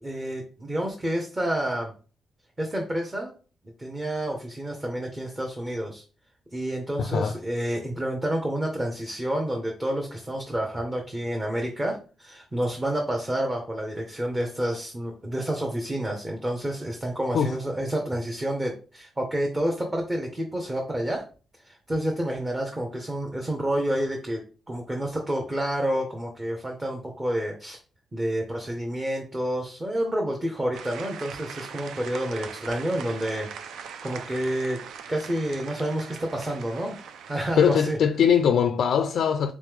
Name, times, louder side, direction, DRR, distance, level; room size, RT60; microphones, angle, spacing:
voice 1, 0.0-1.9 2.6-3.3 3.8-6.0 6.5-21.2 21.6-24.4 24.7-27.8 28.1-33.5 34.0-34.8 35.1-37.0 37.3-38.0, right 1 dB, 20° right, 0.7 m, -29 dB
voice 2, 7.0-7.4 17.3-17.5 37.6-39.5, left 7 dB, 70° left, 0.3 m, -21 dB
sound 1, 30.7-37.9, right 7 dB, 85° right, 0.4 m, -41 dB
3.5 x 3.1 x 3.4 m
cardioid pair, 115°, 0 cm